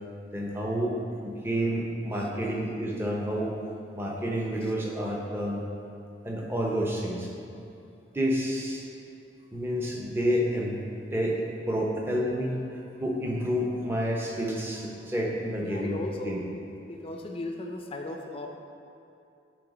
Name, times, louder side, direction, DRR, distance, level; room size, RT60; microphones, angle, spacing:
voice 1, 0.3-0.9 1.2-3.5 3.9-5.6 6.2-7.6 8.1-8.8 9.5-10.8 11.1-11.4 11.7-16.4, equal, 15° right, -2 dB, 0.9 m, -29 dB
voice 2, 15.6-16.6 16.9-18.5, left 2 dB, 30° left, 2 dB, 0.6 m, -36 dB
10.5 x 3.8 x 5.0 m, 2.6 s
head